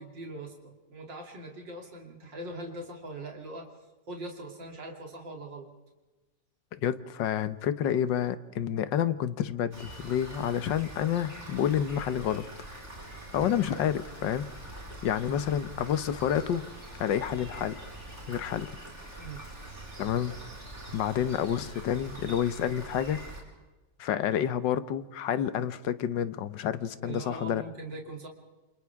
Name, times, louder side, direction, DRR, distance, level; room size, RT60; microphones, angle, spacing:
voice 1, 0.0-3.7 4.1-5.7 13.4-13.6 19.2-19.4 27.0-28.3, right 2 dB, 85° right, 1 dB, 3.6 m, -41 dB
voice 2, 6.7-12.5 13.3-14.5 15.0-16.6 17.0-17.8 18.3-18.7 20.0-20.4 20.9-23.2 24.0-27.6, left 9 dB, 85° left, 13 dB, 1.6 m, -29 dB
Rain, 9.7-23.4, right 1 dB, 40° right, 5.4 m, -44 dB
28.5 x 27.5 x 3.6 m, 1.1 s
omnidirectional pair, 1.9 m